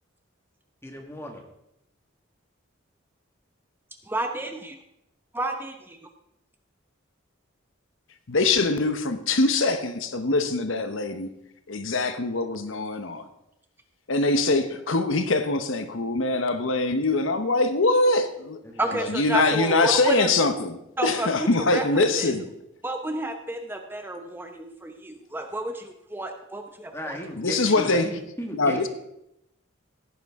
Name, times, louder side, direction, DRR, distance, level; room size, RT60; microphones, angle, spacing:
voice 1, 0.8-1.4 18.6-19.4 26.9-28.9, equal, 10° left, 2 dB, 1.7 m, -37 dB
voice 2, 4.1-4.8 5.3-6.0 18.8-20.3 21.0-22.3 22.8-27.2, right 2 dB, 10° right, 5 dB, 0.7 m, -31 dB
voice 3, 8.3-11.3 11.7-13.3 14.1-18.6 18.9-22.5 27.4-28.1 28.5-28.9, left 3 dB, 75° left, 9 dB, 1.0 m, -23 dB
16.5 x 9.5 x 3.7 m, 0.83 s
head